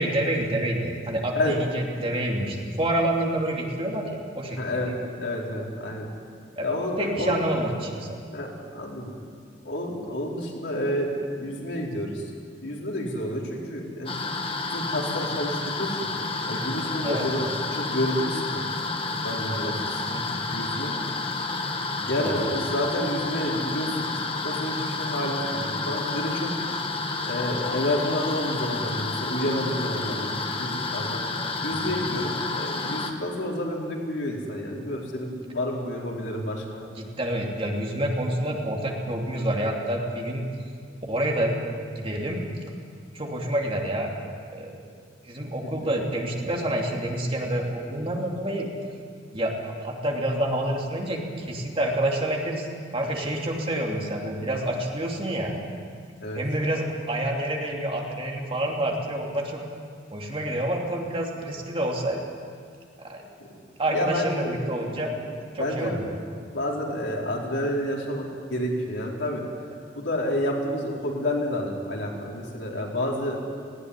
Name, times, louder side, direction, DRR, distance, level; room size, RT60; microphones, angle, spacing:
voice 1, 0.0-4.6 6.6-6.7 7.0-8.2 17.0-17.3 20.1-20.2 22.0-22.4 31.7-32.0 37.0-40.4 41.1-41.6 41.9-42.4 43.1-44.1 44.5-44.8 45.2-48.7 49.3-52.7 52.9-55.6 56.3-59.6 60.1-62.2 63.0-63.3 63.8-65.1 65.5-66.1, right 1 dB, 30° right, 0 dB, 2.9 m, -28 dB
voice 2, 4.6-4.9 5.2-6.1 6.6-7.4 8.3-9.1 9.6-12.2 12.6-14.1 14.7-16.1 16.4-18.6 19.2-20.9 22.1-26.5 27.2-31.3 31.6-36.8 45.6-45.9 56.2-56.4 63.9-65.0 65.6-66.0 66.5-69.4 69.9-73.6, left 1 dB, 80° left, -2 dB, 4.4 m, -29 dB
sound 1, 14.1-33.1, left 3 dB, 30° left, 1.6 m, -30 dB
19.0 x 17.0 x 9.9 m, 2.2 s
head